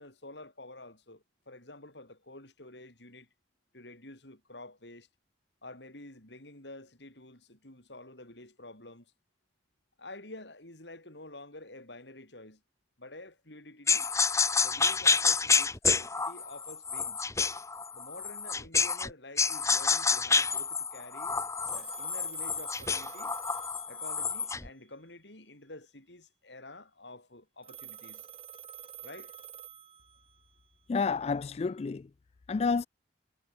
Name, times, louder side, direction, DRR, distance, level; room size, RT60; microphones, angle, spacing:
voice 1, 0.0-3.3 3.7-5.1 5.6-9.1 10.0-12.6 13.0-14.1 14.6-17.3 17.9-21.3 21.7-23.4 23.9-28.3 29.0-29.3, left 2 dB, 70° left, 7.2 m, -49 dB
sound 1, 13.9-19.1 19.4-24.7, left 5 dB, 15° left, 1.1 m, -28 dB
Telephone, 21.6-24.5 27.6-30.5, right 9 dB, 30° right, 4.1 m, -48 dB
voice 2, 30.9-32.1 32.5-32.9, left 4 dB, 35° left, 0.3 m, -29 dB
head